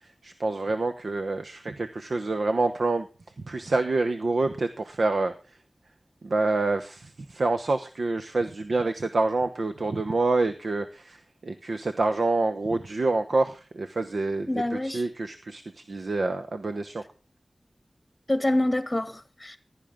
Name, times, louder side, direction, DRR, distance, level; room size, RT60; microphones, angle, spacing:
voice 1, 0.0-3.1 3.5-5.6 6.2-14.5 14.8-17.0, right 3 dB, 80° right, 1.0 m, -27 dB
voice 2, 14.5-15.0 18.3-19.6, left 1 dB, 20° left, 1.5 m, -26 dB
15.5 x 11.5 x 3.6 m
wide cardioid pair, 70°, 0 cm